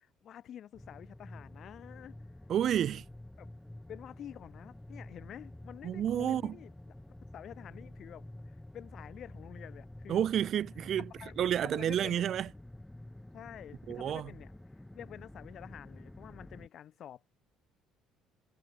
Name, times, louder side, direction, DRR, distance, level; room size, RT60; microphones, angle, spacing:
voice 1, 0.0-2.1 3.4-3.5 3.9-6.7 7.3-10.2 11.1-12.2 13.3-14.5 14.9-17.2, left 10 dB, 50° left, 3.2 m, -49 dB
sound 1, 0.7-16.7, left 1 dB, 5° left, 1.4 m, -49 dB
voice 2, 2.5-3.0 5.8-6.6 10.1-11.1 11.4-12.5 13.9-14.3, right 10 dB, 50° right, 0.6 m, -30 dB
cardioid pair, 130°, 0 cm